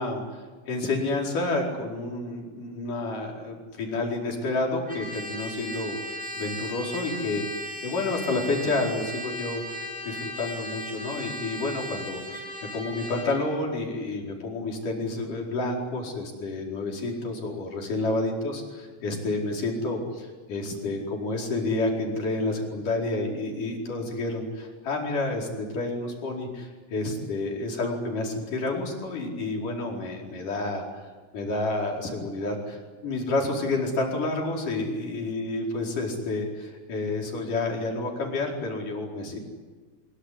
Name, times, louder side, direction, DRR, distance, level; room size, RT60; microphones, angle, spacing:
voice 1, 0.0-6.0 6.4-12.4 12.7-18.6 19.0-31.1 31.3-39.4, left 2 dB, 70° left, 0 dB, 6.2 m, -29 dB
Trumpet, 4.9-13.4, equal, ahead, 6.6 m, -37 dB
24.0 x 23.0 x 9.9 m, 1.4 s
omnidirectional pair, 3.8 m